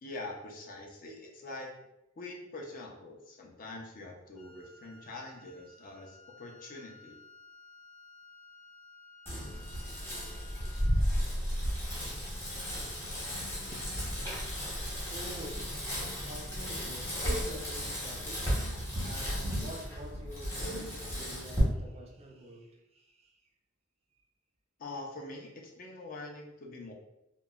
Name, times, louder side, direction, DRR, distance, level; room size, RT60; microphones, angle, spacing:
voice 1, 0.0-1.7 2.2-7.2 24.8-26.9, left 2 dB, 45° left, 0.4 m, -44 dB
Wind instrument woodwind instrument, 4.3-11.0, left 3 dB, 80° left, 1.2 m, -56 dB
Bicycle, 9.3-21.6, equal, 10° left, 0.9 m, -34 dB
voice 2, 13.5-13.9 15.1-15.9 16.3-23.4, right 1 dB, 30° right, 0.4 m, -48 dB
2.9 x 2.1 x 2.3 m
head